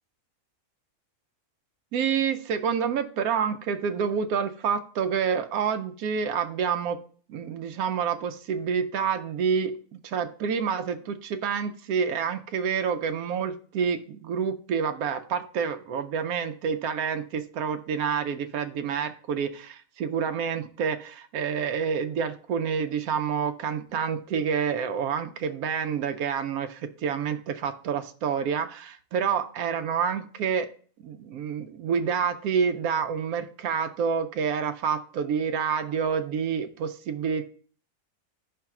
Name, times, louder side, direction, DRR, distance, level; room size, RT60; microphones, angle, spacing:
voice 1, 1.9-7.0 7.3-9.8 10.0-30.7 31.0-37.4, right 6 dB, 80° right, 7 dB, 1.1 m, -28 dB
5.5 x 3.4 x 5.8 m, 0.43 s
omnidirectional pair, 1.5 m